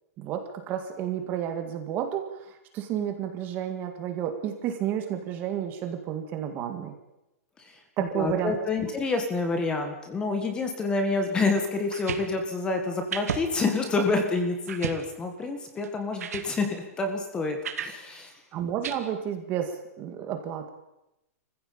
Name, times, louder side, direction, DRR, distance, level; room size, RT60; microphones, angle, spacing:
voice 1, 0.2-6.9 8.0-8.5 18.5-20.7, right 9 dB, 25° right, 6 dB, 1.9 m, -31 dB
voice 2, 7.6-18.3, left 3 dB, 10° left, 5 dB, 1.9 m, -28 dB
sound 1, 11.8-12.2 13.1-13.4 13.9-14.0 14.7-15.0 15.8-15.9 16.2-16.5 17.6-17.9 18.8-18.9, right 8 dB, 90° right, 2.5 m, -32 dB
22.5 x 15.0 x 8.7 m, 0.90 s
supercardioid pair, 175°, 8 cm